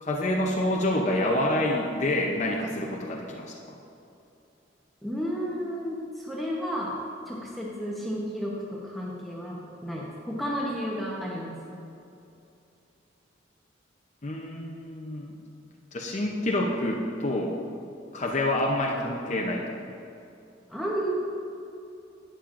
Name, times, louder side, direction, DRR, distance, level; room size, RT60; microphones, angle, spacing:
voice 1, 0.0-3.8 14.2-15.3 15.9-17.5 18.1-19.6, left 1 dB, 40° left, -1 dB, 0.7 m, -27 dB
voice 2, 5.0-7.0 7.3-11.6 20.7-21.1, equal, ahead, -5 dB, 0.9 m, -32 dB
11.5 x 8.9 x 2.6 m, 2.7 s
head